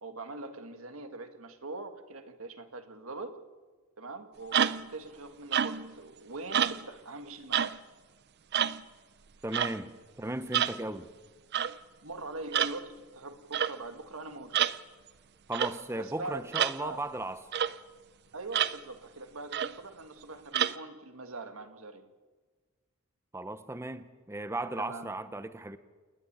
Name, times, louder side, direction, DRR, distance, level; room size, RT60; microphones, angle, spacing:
voice 1, 0.0-3.4 4.0-7.8 10.7-10.8 12.0-14.6 16.0-16.5 16.8-17.0 18.3-22.1 24.8-25.1, right 3 dB, 75° right, 7 dB, 1.6 m, -42 dB
sound 1, 4.5-4.9 5.5-5.9 6.5-6.9 7.5-7.8 8.5-8.8 9.5-9.8 10.5-10.8 11.5-11.8 12.5-12.8 13.5-13.8 14.5-14.8 15.5-15.8 16.5-16.8 17.5-17.7 18.5-18.8 19.5-19.8 20.5-20.8, right 9 dB, 50° right, 0.5 m, -28 dB
voice 2, 9.4-11.1 15.5-17.4 23.3-25.8, right 2 dB, 10° right, 12 dB, 0.7 m, -36 dB
28.0 x 10.5 x 9.7 m, 1.4 s
head